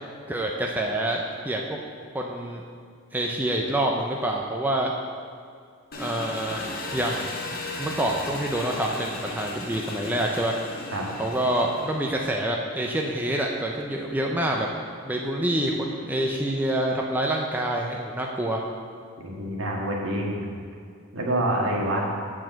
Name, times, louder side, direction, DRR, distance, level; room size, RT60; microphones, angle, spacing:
voice 1, 0.3-1.6 2.1-2.6 3.1-4.9 6.0-6.6 6.9-7.4 7.8-10.6 11.2-14.7 15.0-18.6, right 1 dB, 10° right, -1 dB, 0.5 m, -27 dB
Engine, 5.9-12.4, left 2 dB, 45° left, 0.9 m, -36 dB
voice 2, 19.2-20.5 21.1-22.1, right 1 dB, 65° right, -2 dB, 1.7 m, -26 dB
7.9 x 4.7 x 7.3 m, 2.2 s
head